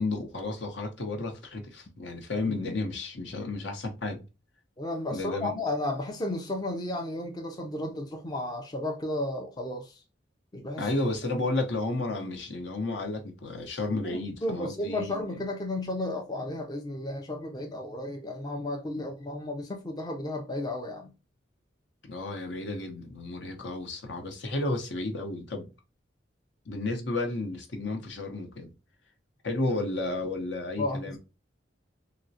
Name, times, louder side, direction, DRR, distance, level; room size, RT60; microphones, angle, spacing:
voice 1, 0.0-4.2 5.1-5.6 10.8-15.2 22.0-25.7 26.7-28.7 29.4-31.2, left 2 dB, 70° left, 0.8 m, -32 dB
voice 2, 4.8-10.0 10.5-10.9 14.1-21.1 30.8-31.0, left 1 dB, 20° left, 0.4 m, -33 dB
3.6 x 2.1 x 2.6 m
head